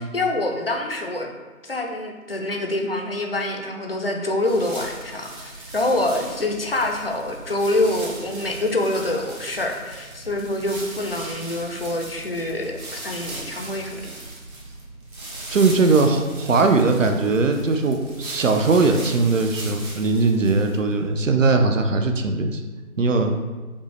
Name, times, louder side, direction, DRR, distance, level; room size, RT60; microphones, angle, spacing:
voice 1, 0.1-1.3 1.6-14.1, left 2 dB, 45° left, 2 dB, 0.4 m, -26 dB
sound 1, 4.4-20.9, right 2 dB, 80° right, 1.2 m, -38 dB
voice 2, 15.5-22.6 23.0-23.3, right 3 dB, 65° right, 5 dB, 0.5 m, -20 dB
5.1 x 2.1 x 3.2 m, 1.3 s
figure-of-eight pair, 160°, 42 cm